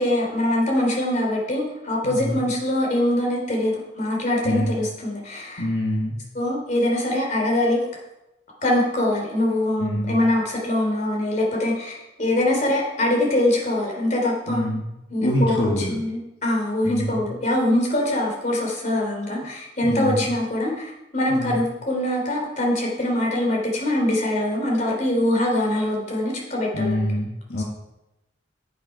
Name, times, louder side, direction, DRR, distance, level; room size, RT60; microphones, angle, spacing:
voice 1, 0.0-5.6 6.3-7.8 8.6-14.7 15.1-27.0, left 1 dB, 40° left, -1 dB, 3.3 m, -23 dB
voice 2, 2.0-2.4 4.4-4.8 5.6-6.2 9.8-10.2 14.5-14.9 15.2-16.0 16.8-17.2 19.8-20.3 21.3-21.6 26.7-27.6, left 1 dB, 60° left, -3 dB, 1.6 m, -25 dB
9.1 x 8.5 x 5.6 m, 0.92 s
head